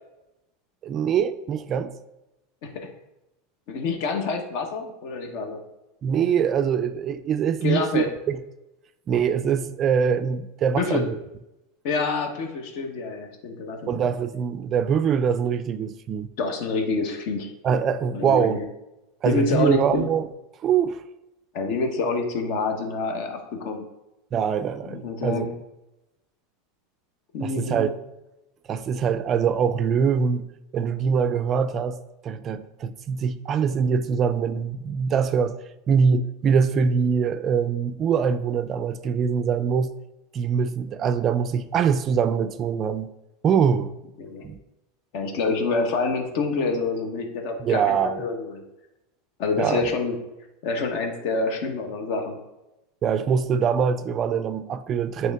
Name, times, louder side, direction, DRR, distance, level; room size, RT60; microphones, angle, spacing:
voice 1, 0.8-1.9 6.0-8.4 9.1-11.1 13.9-16.3 17.6-18.6 19.2-20.3 20.6-21.0 24.3-25.5 27.4-27.9 28.7-30.5 30.7-32.0 32.2-35.6 35.9-39.9 40.3-43.1 43.4-43.9 44.4-44.6 47.6-48.2 49.6-49.9 53.0-55.3, right 7 dB, 30° right, 0.3 m, -23 dB
voice 2, 3.7-5.6 7.6-8.1 10.8-11.0 11.8-14.0 16.4-17.5 18.1-18.6 19.2-20.1 21.5-23.8 24.9-25.5 27.3-27.9 44.2-44.4 45.1-48.6 49.4-50.2 50.6-52.4, left 4 dB, 60° left, 1.1 m, -27 dB
9.0 x 3.1 x 3.4 m
supercardioid pair, 135°, 0 cm